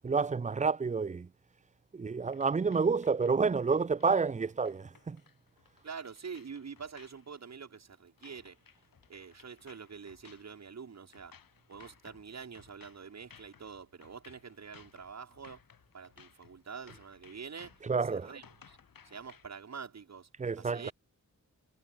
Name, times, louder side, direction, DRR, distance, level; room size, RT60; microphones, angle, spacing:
voice 1, 0.0-1.3 1.9-5.2 17.8-18.3 20.4-20.9, right 5 dB, 20° right, 0.4 m, -29 dB
sound 1, 2.3-19.5, left 7 dB, 80° left, 3.6 m, -61 dB
voice 2, 5.8-8.6 9.1-11.3 11.7-15.6 15.9-17.7 18.0-18.8 19.0-20.3 20.6-20.9, right 6 dB, 50° right, 2.1 m, -46 dB
wide cardioid pair, 155°, 34 cm